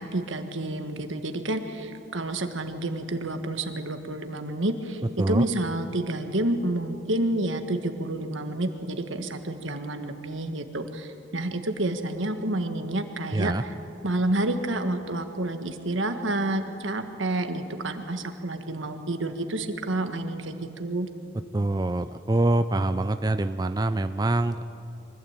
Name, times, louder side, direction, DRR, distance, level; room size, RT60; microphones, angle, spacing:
voice 1, 0.0-5.0 5.3-13.5 14.0-21.1, right 1 dB, 80° right, 7 dB, 1.6 m, -29 dB
voice 2, 13.3-13.6 21.5-24.6, right 2 dB, 20° right, 10 dB, 0.4 m, -25 dB
24.0 x 15.5 x 8.9 m, 2.8 s
head